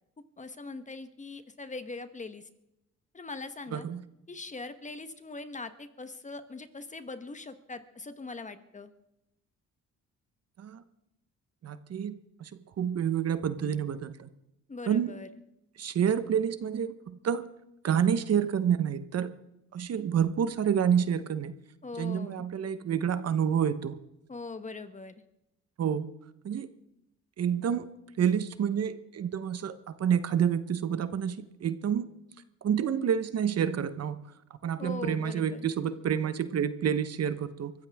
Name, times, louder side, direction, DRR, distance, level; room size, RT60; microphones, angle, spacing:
voice 1, 0.4-2.5 3.1-3.9 4.3-8.9 14.7-15.3 21.8-22.5 24.3-25.2 34.8-35.7, left 3 dB, 25° left, 10 dB, 1.3 m, -41 dB
voice 2, 11.6-12.5 12.8-14.3 14.9-15.1 15.8-17.5 17.8-19.3 19.7-21.5 22.0-24.0 25.8-26.1 26.4-26.7 27.4-27.9 28.2-32.1 32.6-34.2 34.6-37.7, right 8 dB, 55° right, 12 dB, 1.1 m, -28 dB
23.5 x 14.5 x 3.6 m, 0.87 s
cardioid pair, 90°, 30 cm